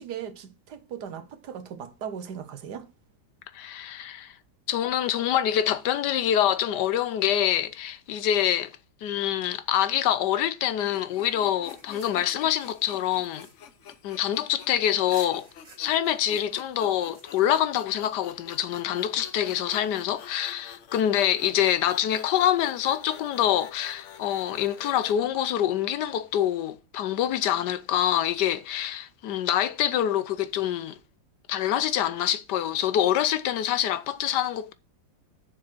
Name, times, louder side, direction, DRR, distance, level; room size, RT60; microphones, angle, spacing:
voice 1, 0.0-2.9, right 8 dB, 65° right, 1.5 m, -38 dB
voice 2, 3.5-4.4 4.7-8.7 9.0-13.5 14.0-15.5 15.8-30.9 31.5-34.7, left 11 dB, 70° left, 1.2 m, -25 dB
sound 1, 10.8-25.1, left 7 dB, 55° left, 0.9 m, -48 dB
sound 2, 11.2-14.6 15.1-17.8, right 3 dB, 45° right, 3.0 m, -53 dB
7.1 x 6.1 x 6.0 m
omnidirectional pair, 2.0 m